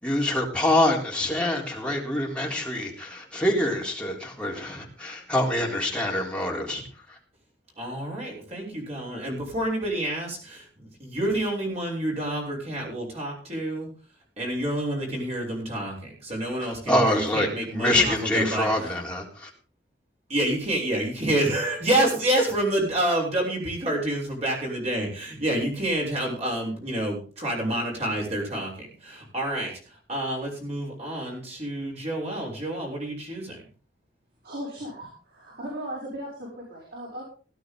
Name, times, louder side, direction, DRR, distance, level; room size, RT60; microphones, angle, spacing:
voice 1, 0.0-6.8 7.1-7.2 16.7-19.5, left 1 dB, 5° left, -2 dB, 3.8 m, -25 dB
voice 2, 7.8-13.9 14.4-18.7 20.3-28.7 29.0-29.7 30.1-33.6, right 1 dB, 40° right, 0 dB, 7.2 m, -28 dB
voice 3, 34.4-37.2, equal, 65° right, -4 dB, 6.6 m, -37 dB
18.0 x 12.0 x 3.9 m, 0.38 s
head